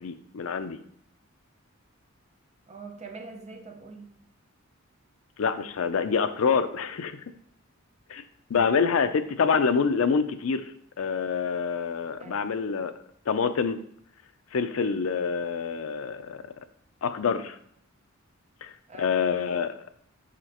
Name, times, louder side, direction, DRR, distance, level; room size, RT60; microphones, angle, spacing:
voice 1, 0.0-0.8 5.4-7.2 8.1-8.2 8.5-10.7 11.0-12.9 13.3-13.8 14.5-16.4 17.0-17.6 18.6-18.7 19.0-19.8, left 5 dB, 80° left, 0.5 m, -26 dB
voice 2, 2.7-4.2 8.5-8.7 12.2-12.6 18.9-19.3, right 3 dB, 35° right, 0.6 m, -44 dB
6.4 x 5.0 x 2.9 m
head